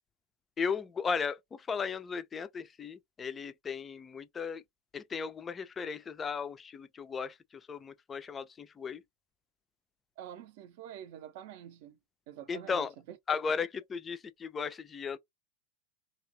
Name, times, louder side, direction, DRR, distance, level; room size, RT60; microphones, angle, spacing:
voice 1, 0.6-4.6 4.9-7.4 7.7-9.0 12.5-12.9 13.3-15.2, left 5 dB, 20° left, 0.3 m, -35 dB
voice 2, 10.2-12.0 12.3-13.4, right 10 dB, 50° right, 0.5 m, -47 dB
2.8 x 2.2 x 2.6 m
figure-of-eight pair, 90°, 0 cm